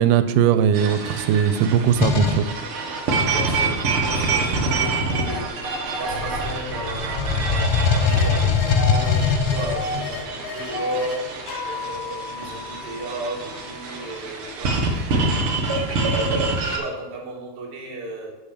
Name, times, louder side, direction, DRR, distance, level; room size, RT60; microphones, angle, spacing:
voice 1, 0.0-2.5, right 8 dB, 90° right, 11 dB, 2.6 m, -19 dB
sound 1, 0.7-16.8, right 3 dB, 75° right, 1.2 m, -27 dB
sound 2, 2.0-2.5 3.8-5.7 6.1-10.2, left 5 dB, 80° left, 2.2 m, -22 dB
voice 2, 3.1-15.5 15.9-18.3, right 1 dB, 45° right, -2 dB, 2.2 m, -34 dB
sound 3, 8.0-8.3 8.6-11.2 11.5-14.1, left 3 dB, 55° left, 2.6 m, -33 dB
8.4 x 5.6 x 6.5 m, 1.1 s
omnidirectional pair, 4.5 m